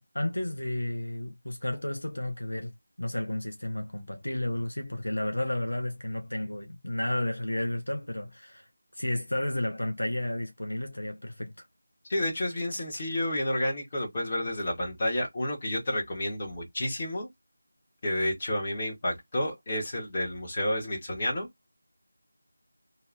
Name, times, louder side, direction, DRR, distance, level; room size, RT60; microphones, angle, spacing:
voice 1, 0.0-2.7 3.0-11.7, left 1 dB, 70° left, 0.5 m, -32 dB
voice 2, 12.1-17.3 18.0-21.5, left 1 dB, 25° left, 1.3 m, -30 dB
2.7 x 2.4 x 2.5 m
figure-of-eight pair, 165°, 0 cm